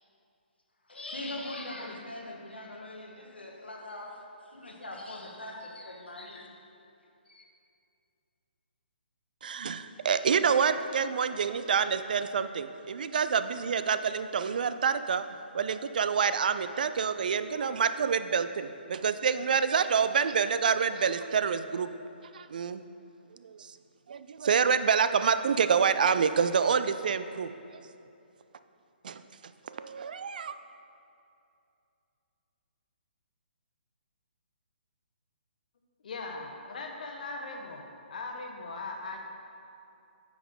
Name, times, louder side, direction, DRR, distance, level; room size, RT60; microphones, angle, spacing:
voice 1, 0.9-6.5 7.3-7.4, left 1 dB, 75° left, 1 dB, 1.3 m, -41 dB
voice 2, 9.4-15.3 15.5-21.9 22.3-22.8 23.4-23.6 24.1-27.5 29.0-29.2 29.7-30.5, right 6 dB, 50° right, 11 dB, 0.4 m, -27 dB
voice 3, 36.0-37.8 38.1-39.2, left 3 dB, 50° left, 2 dB, 1.1 m, -39 dB
9.2 x 6.1 x 3.9 m, 2.6 s
figure-of-eight pair, 135°, 6 cm